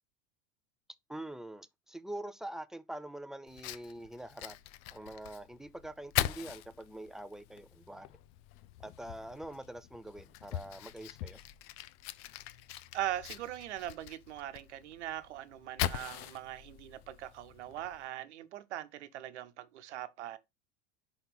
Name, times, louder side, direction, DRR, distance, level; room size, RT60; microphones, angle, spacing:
voice 1, 1.1-4.6 4.9-8.1 8.8-11.4, right 1 dB, ahead, 0.4 m, -44 dB
Fire, 3.5-18.1, left 14 dB, 50° left, 0.6 m, -42 dB
voice 2, 12.9-20.4, right 13 dB, 80° right, 0.9 m, -41 dB
5.2 x 4.0 x 5.9 m
hypercardioid pair, 100°, 34 cm